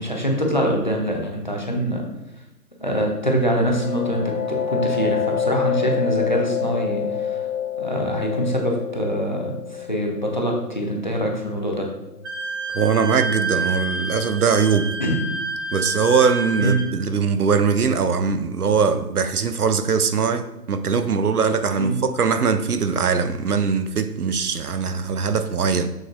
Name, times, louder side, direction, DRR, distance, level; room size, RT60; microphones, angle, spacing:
voice 1, 0.0-2.0 2.8-7.5 7.8-11.9 15.0-15.2 16.6-16.8 21.8-22.0, right 1 dB, 30° left, 0.7 m, -24 dB
sound 1, 3.2-12.6, left 9 dB, 85° left, 2.3 m, -28 dB
Wind instrument woodwind instrument, 12.2-16.9, right 3 dB, 40° right, 1.5 m, -29 dB
voice 2, 12.7-14.9 15.7-25.9, right 5 dB, 65° right, 0.7 m, -21 dB
6.4 x 6.3 x 2.5 m
hypercardioid pair, 165°, 49 cm